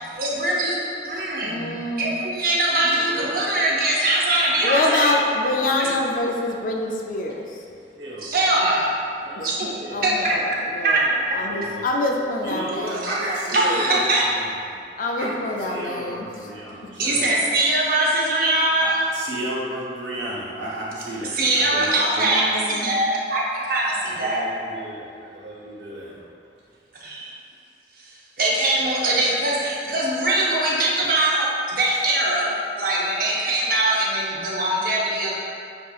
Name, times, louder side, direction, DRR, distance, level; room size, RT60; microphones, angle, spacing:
voice 1, 0.1-0.8 1.0-5.1 5.8-5.9 8.2-8.9 9.4-9.7 10.0-10.3 10.8-11.0 13.0-13.1 13.5-14.2 17.0-19.0 21.3-24.5 27.0-27.4 28.0-35.4, right 2 dB, 50° right, -4 dB, 0.7 m, -22 dB
voice 2, 1.4-2.2 4.6-7.6 9.4-9.5 9.9-13.1 15.0-16.5 22.2-23.0, left 2 dB, 50° left, 1 dB, 0.4 m, -26 dB
voice 3, 2.8-3.4 7.9-8.3 9.3-9.5 9.8-10.0 11.4-11.9 12.4-14.3 15.2-15.3 15.7-17.2 18.8-22.3 24.1-26.2, right 1 dB, 90° right, -6 dB, 1.1 m, -32 dB
7.1 x 2.8 x 2.4 m, 2.5 s
head